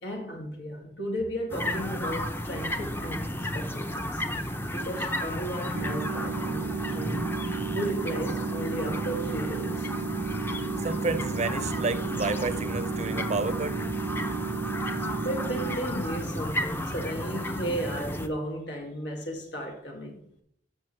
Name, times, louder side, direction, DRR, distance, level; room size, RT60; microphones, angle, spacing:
voice 1, 0.0-7.3 7.7-9.9 15.2-20.2, right 1 dB, 75° left, 2.4 m, -35 dB
sound 1, 1.5-18.3, left 1 dB, 15° left, 0.7 m, -33 dB
sound 2, 5.7-15.8, right 7 dB, 80° right, 0.3 m, -34 dB
voice 2, 10.8-13.8, right 3 dB, 40° right, 0.6 m, -30 dB
13.5 x 5.9 x 3.3 m
head